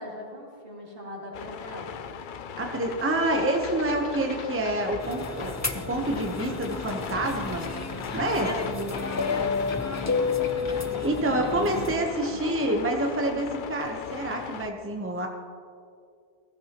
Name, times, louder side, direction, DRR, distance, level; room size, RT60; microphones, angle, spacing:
voice 1, 0.0-2.1 8.3-10.5, equal, 60° right, -2 dB, 2.5 m, -40 dB
sound 1, 1.3-14.7, left 7 dB, 60° left, 0.7 m, -39 dB
voice 2, 2.6-7.7 8.1-8.5 10.8-15.3, right 1 dB, 15° right, 2 dB, 0.9 m, -27 dB
sound 2, 3.2-12.5, left 4 dB, 75° left, 1.2 m, -42 dB
sound 3, 5.0-11.9, left 4 dB, 20° left, 0.5 m, -31 dB
15.5 x 15.0 x 3.0 m, 2.4 s
omnidirectional pair, 1.1 m